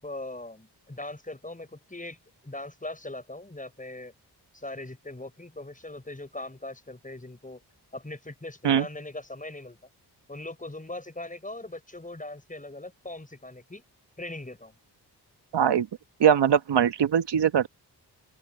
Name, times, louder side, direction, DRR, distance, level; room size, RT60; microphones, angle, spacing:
voice 1, 0.0-2.2 2.4-4.1 4.5-7.6 7.9-9.8 10.3-13.8 14.2-14.7, left 2 dB, 20° left, 6.4 m, -40 dB
voice 2, 15.5-15.9 16.2-17.7, right 8 dB, 75° right, 1.2 m, -21 dB
cardioid pair, 60°, 42 cm